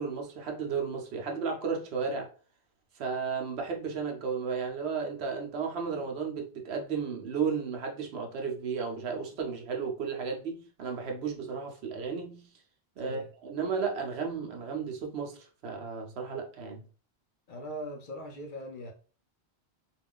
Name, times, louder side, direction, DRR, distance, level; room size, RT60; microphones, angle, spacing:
voice 1, 0.0-2.3 3.0-12.5 13.0-15.4 15.6-16.8, right 5 dB, 75° right, 0.9 m, -33 dB
voice 2, 13.0-13.3 17.5-18.9, equal, 60° left, 0.6 m, -40 dB
2.5 x 2.3 x 3.5 m
omnidirectional pair, 1.1 m